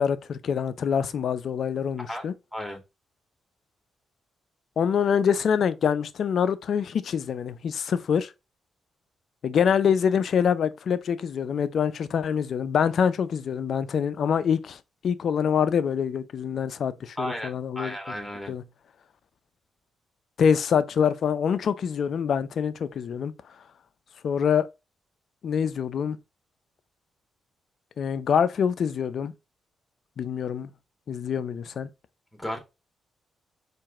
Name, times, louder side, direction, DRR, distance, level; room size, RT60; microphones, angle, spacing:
voice 1, 0.0-2.3 4.8-8.3 9.4-14.8 15.0-18.0 18.5-18.6 20.4-23.3 24.2-24.7 25.4-26.2 28.0-29.3 30.2-30.7 31.1-31.9, left 7 dB, 60° left, 0.4 m, -25 dB
voice 2, 2.5-2.8 17.2-18.5 32.3-32.6, equal, 5° left, 2.1 m, -34 dB
4.6 x 2.5 x 3.4 m
hypercardioid pair, 40°, 0 cm